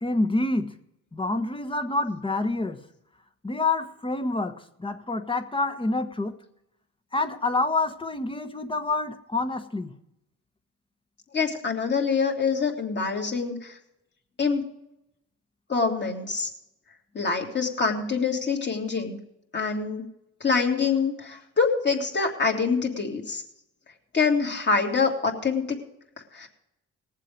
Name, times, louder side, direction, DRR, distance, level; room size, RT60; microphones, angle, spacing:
voice 1, 0.0-0.7 1.1-2.8 3.4-6.4 7.1-9.9, left 2 dB, 15° left, 8 dB, 1.2 m, -27 dB
voice 2, 11.3-13.8 14.4-14.6 15.7-16.5 17.1-19.2 19.5-20.0 20.4-23.4 24.1-25.8 26.3-26.5, left 5 dB, 35° left, 1 dB, 2.8 m, -25 dB
19.0 x 7.5 x 5.1 m, 0.84 s
cardioid pair, 90°, 30 cm